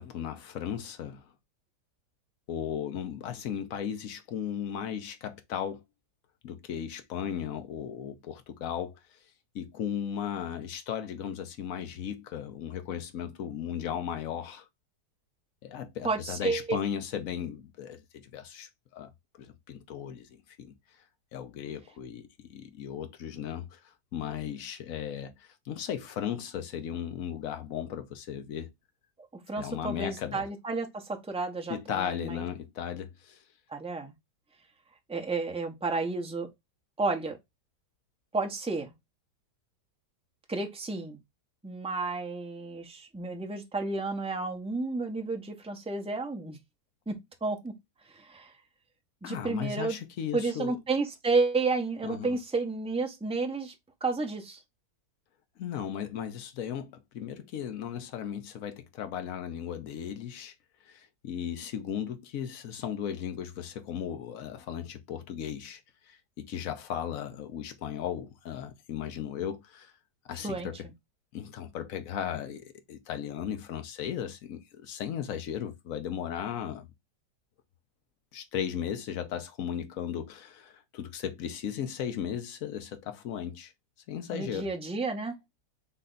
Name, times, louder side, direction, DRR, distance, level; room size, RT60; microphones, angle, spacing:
voice 1, 0.0-1.3 2.5-5.8 6.4-9.0 9.5-14.7 15.6-19.1 19.4-20.3 20.6-20.7 21.3-23.8 24.1-28.7 29.6-30.4 31.7-33.4 49.2-50.8 52.0-52.4 55.6-60.5 60.9-65.8 66.1-69.9 70.3-70.9 71.3-76.9 78.3-83.7 84.1-84.7, left 9 dB, 60° left, 1.2 m, -36 dB
voice 2, 16.0-16.7 29.5-32.5 33.7-34.1 35.1-36.5 37.0-37.4 38.3-38.9 40.5-41.2 41.6-46.6 47.1-47.8 48.1-48.5 49.2-50.0 50.3-53.7 54.0-54.6 70.4-70.7 84.3-85.4, right 3 dB, 5° right, 0.5 m, -31 dB
4.1 x 3.3 x 3.9 m
omnidirectional pair, 1.8 m